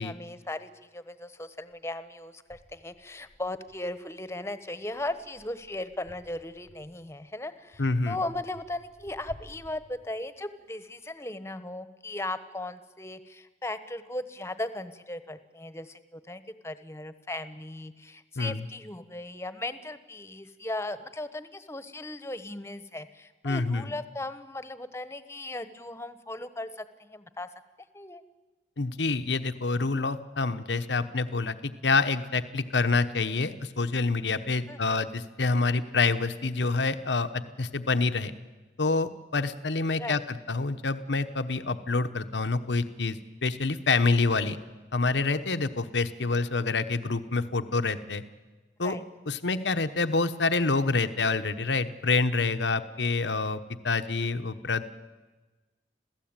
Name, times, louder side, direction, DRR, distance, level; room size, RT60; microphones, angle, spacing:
voice 1, 0.0-27.5 27.9-28.2 34.7-35.1 40.0-40.2 48.8-49.0 52.8-52.9, left 2 dB, 15° left, 12 dB, 1.1 m, -37 dB
sound 1, 1.7-1.8 2.5-4.3 4.8-7.1 7.7-10.5, left 1 dB, 60° right, 5.5 m, -54 dB
voice 2, 7.8-8.2 18.4-18.7 23.4-23.9 28.8-38.3 38.8-44.6 44.9-48.2 48.8-49.0 49.3-54.9, left 3 dB, 85° left, 9 dB, 1.1 m, -27 dB
27.5 x 16.5 x 8.9 m, 1.2 s
head